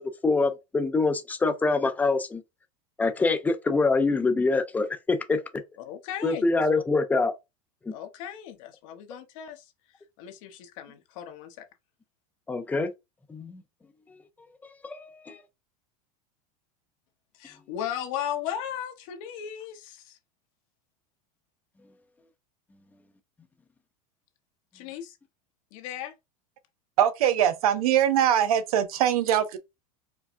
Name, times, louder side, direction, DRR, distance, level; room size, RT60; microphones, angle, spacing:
voice 1, 0.0-2.4 3.0-5.4 6.2-7.3 7.9-8.0 12.5-12.9 13.3-13.6 14.8-15.4, left 3 dB, 10° left, 0.4 m, -25 dB
voice 2, 5.8-6.5 7.9-9.7 10.2-11.6 17.3-20.2 24.7-25.2 25.7-26.1, left 10 dB, 65° left, 1.0 m, -36 dB
voice 3, 27.0-29.6, right 10 dB, 90° right, 0.7 m, -22 dB
4.7 x 2.3 x 2.5 m
supercardioid pair, 135°, 18 cm